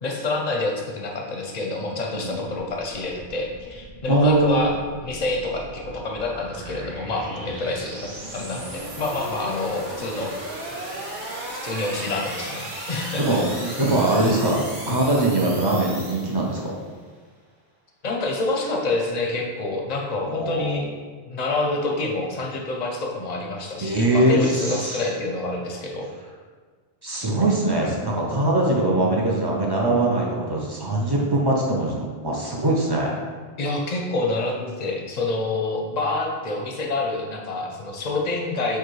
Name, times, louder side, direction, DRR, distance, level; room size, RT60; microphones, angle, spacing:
voice 1, 0.0-10.3 11.6-13.7 18.0-20.9 21.3-26.1 33.6-38.8, left 2 dB, 45° left, 1 dB, 0.6 m, -27 dB
voice 2, 2.1-2.4 4.1-4.6 13.2-16.7 20.3-20.8 23.8-25.0 27.0-33.2, right 1 dB, 30° right, -3 dB, 0.4 m, -22 dB
sound 1, 2.6-16.8, right 1 dB, 50° right, 1.0 m, -36 dB
6.6 x 2.4 x 3.1 m, 1.5 s
omnidirectional pair, 1.1 m